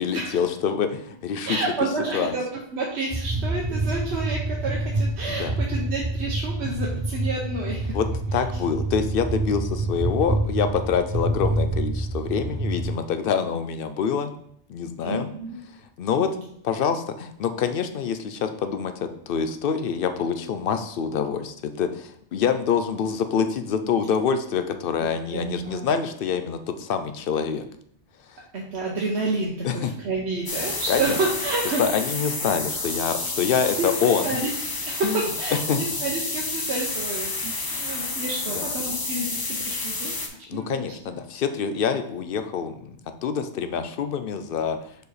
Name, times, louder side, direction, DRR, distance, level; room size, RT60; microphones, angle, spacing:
voice 1, 0.0-1.9 2.1-2.3 5.3-5.5 7.9-8.1 8.3-14.3 14.7-15.3 16.0-16.3 16.6-27.7 28.3-28.4 29.6-29.9 30.9-31.2 31.8-34.3 35.0-35.2 35.7-35.8 38.5-38.7 40.5-43.0 43.2-44.8, left 7 dB, 60° left, 9 dB, 0.7 m, -26 dB
voice 2, 1.5-2.4 2.7-7.9 8.3-8.4 15.0-15.6 16.2-16.4 25.3-25.9 28.5-31.8 33.8-34.5 34.9-35.1 35.4-41.1, right 3 dB, 75° right, -3 dB, 1.1 m, -30 dB
sound 1, 3.1-12.9, right 2 dB, 30° right, 0.7 m, -27 dB
sound 2, 30.5-40.3, left 3 dB, 25° left, 0.5 m, -30 dB
5.0 x 4.6 x 4.1 m, 0.67 s
omnidirectional pair, 1.1 m